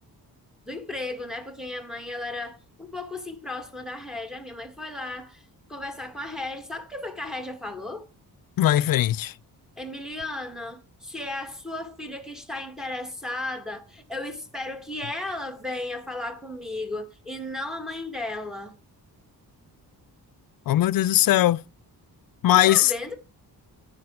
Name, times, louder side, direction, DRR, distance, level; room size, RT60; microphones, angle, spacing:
voice 1, 0.7-5.4 5.7-8.1 9.8-18.7 22.5-23.1, left 2 dB, ahead, 1.3 m, -35 dB
voice 2, 8.6-9.3 20.7-21.6 22.4-22.9, left 13 dB, 60° left, 0.5 m, -20 dB
14.5 x 5.1 x 6.0 m
wide cardioid pair, 155°, 39 cm